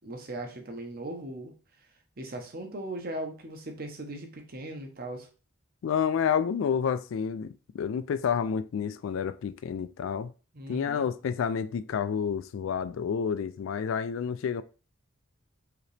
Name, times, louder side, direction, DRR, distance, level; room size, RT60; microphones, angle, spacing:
voice 1, 0.0-1.5 2.2-5.3 10.5-11.1, right 1 dB, 45° right, 0.9 m, -38 dB
voice 2, 5.8-10.3 10.7-14.6, left 7 dB, 70° left, 0.3 m, -29 dB
4.9 x 2.9 x 3.3 m
head